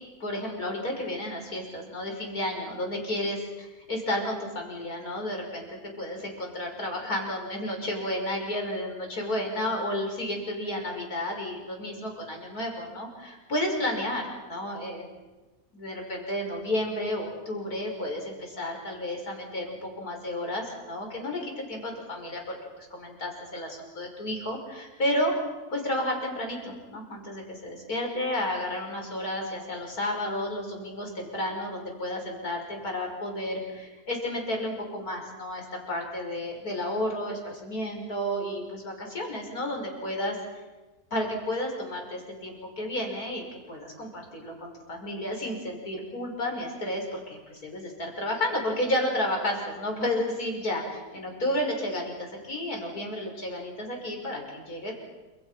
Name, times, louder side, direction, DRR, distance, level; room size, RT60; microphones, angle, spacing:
voice 1, 0.2-15.1 15.7-25.3 25.7-40.4 41.1-54.9, left 1 dB, 90° left, 1 dB, 6.7 m, -32 dB
29.0 x 27.5 x 5.9 m, 1.2 s
omnidirectional pair, 1.5 m